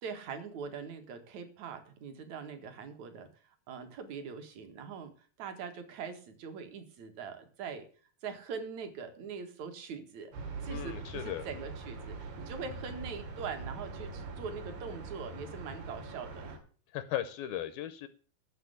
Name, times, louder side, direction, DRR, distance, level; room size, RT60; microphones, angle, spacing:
voice 1, 0.0-3.3 3.7-5.1 5.4-7.8 8.2-10.3 10.6-16.6, right 6 dB, 55° right, 7 dB, 2.6 m, -42 dB
sound 1, 10.3-16.6, right 3 dB, 75° right, 4.4 m, -42 dB
voice 2, 10.7-11.5 16.9-18.1, left 11 dB, 75° left, 12 dB, 2.4 m, -37 dB
12.0 x 6.8 x 8.1 m, 0.41 s
omnidirectional pair, 4.6 m